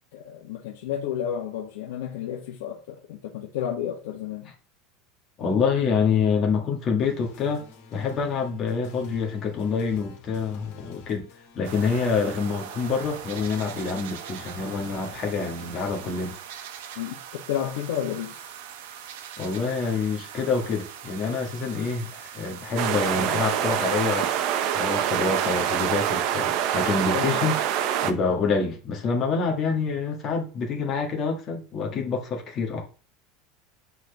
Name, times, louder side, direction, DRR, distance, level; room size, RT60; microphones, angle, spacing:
voice 1, 0.1-4.5 17.0-17.2 17.5-18.4 27.1-27.4, left 9 dB, 85° left, 1.2 m, -31 dB
voice 2, 5.4-7.6 7.9-11.2 11.5-16.4 19.4-24.3 24.7-27.5 28.0-32.8, left 5 dB, 30° left, 1.8 m, -26 dB
sound 1, 7.0-16.3, left 5 dB, 65° left, 2.5 m, -50 dB
sound 2, 11.6-26.2, right 9 dB, 80° right, 1.0 m, -41 dB
sound 3, 22.8-28.1, right 10 dB, 50° right, 0.7 m, -25 dB
8.1 x 4.5 x 3.5 m
supercardioid pair, 160°, 0 cm